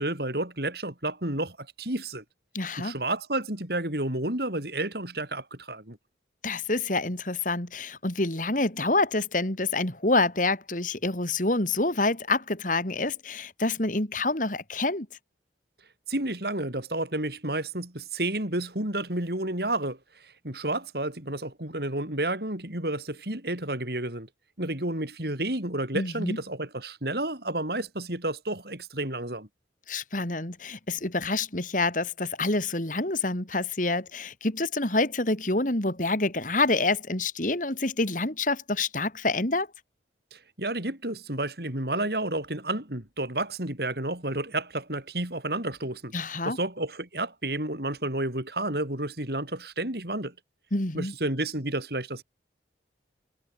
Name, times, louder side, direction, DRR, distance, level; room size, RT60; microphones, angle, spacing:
voice 1, 0.0-2.2 2.8-6.0 16.1-24.3 24.6-29.5 40.3-46.1 46.4-50.3 50.9-52.2, right 1 dB, 60° right, 4.6 m, -31 dB
voice 2, 2.5-3.0 6.4-15.1 25.9-26.4 29.9-39.7 46.1-46.6 50.7-51.1, left 2 dB, 45° left, 3.2 m, -27 dB
head